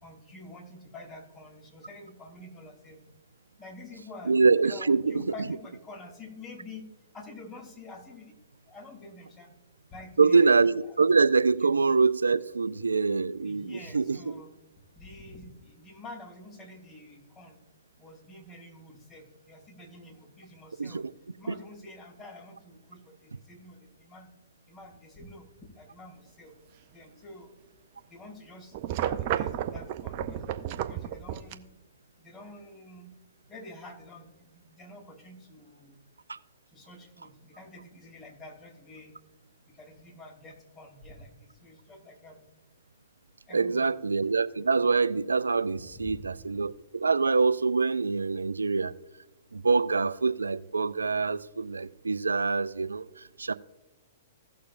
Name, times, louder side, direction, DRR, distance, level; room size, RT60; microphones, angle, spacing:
voice 1, 0.0-3.0 3.6-6.9 7.1-8.3 8.7-9.5 9.9-10.5 10.9-11.0 13.4-14.5 15.0-17.6 18.0-21.0 21.4-24.3 24.7-25.5 25.8-26.5 26.9-27.5 28.1-28.7 29.0-30.4 30.8-31.6 32.2-33.1 33.5-36.0 36.7-39.1 39.7-42.4 43.5-43.9 45.9-46.1, left 2 dB, 20° left, 2.9 m, -47 dB
voice 2, 4.3-5.2 10.2-14.3 20.8-21.0 36.3-36.4 43.5-48.9 49.5-53.5, right 4 dB, 85° right, 0.3 m, -25 dB
sound 1, 28.7-31.5, right 11 dB, 45° right, 0.6 m, -32 dB
16.5 x 6.7 x 2.6 m
hypercardioid pair, 115°, 0 cm